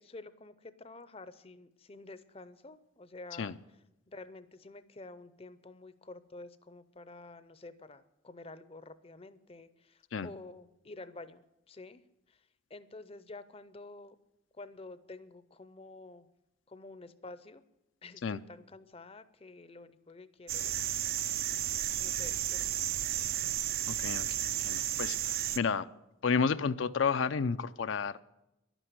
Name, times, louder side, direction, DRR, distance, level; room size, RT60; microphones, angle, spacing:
voice 1, 0.0-3.8 4.1-12.0 12.3-14.2 14.5-16.3 16.7-17.6 18.0-20.9 22.0-22.9, left 2 dB, 30° left, 14 dB, 0.6 m, -49 dB
sound 1, 20.5-25.6, right 12 dB, 45° right, 0.5 m, -33 dB
voice 2, 23.9-25.9 26.2-28.2, left 5 dB, 65° left, 12 dB, 0.5 m, -31 dB
11.5 x 9.0 x 9.5 m, 0.90 s
head